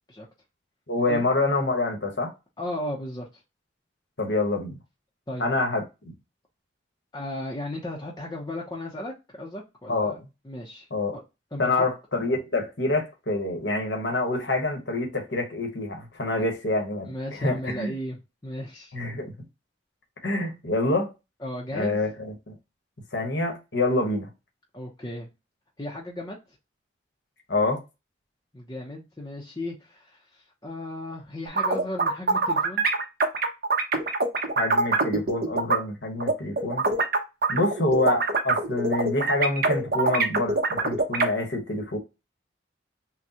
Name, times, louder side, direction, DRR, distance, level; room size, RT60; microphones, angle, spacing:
voice 1, 0.9-2.3 4.2-4.8 5.4-6.1 9.9-10.2 10.9-11.2 11.6-17.9 18.9-19.3 20.2-21.1 21.7-22.3 23.1-24.3 27.5-27.8 34.6-36.8 37.5-42.0, left 2 dB, 75° left, 1.3 m, -26 dB
voice 2, 2.6-3.4 5.3-5.4 7.1-10.1 10.4-10.9 11.1-11.2 11.5-11.9 16.4-16.5 17.0-18.2 18.4-19.0 21.4-22.0 24.7-25.3 25.8-26.4 28.5-32.8, left 1 dB, 20° left, 0.7 m, -35 dB
sound 1, 31.5-35.8 36.2-41.3, right 3 dB, 55° right, 1.0 m, -24 dB
6.0 x 2.3 x 2.8 m
head